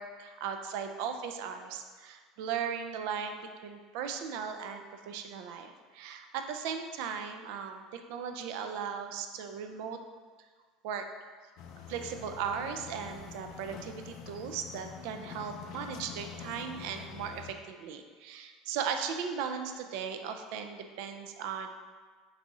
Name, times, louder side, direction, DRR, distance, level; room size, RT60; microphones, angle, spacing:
voice 1, 0.0-10.0 10.8-11.1 11.9-21.7, right 7 dB, 60° right, 6 dB, 0.4 m, -37 dB
sound 1, 11.6-17.5, left 7 dB, 45° left, 0.3 m, -46 dB
4.1 x 2.7 x 4.7 m, 1.5 s
cardioid pair, 170°, 0 cm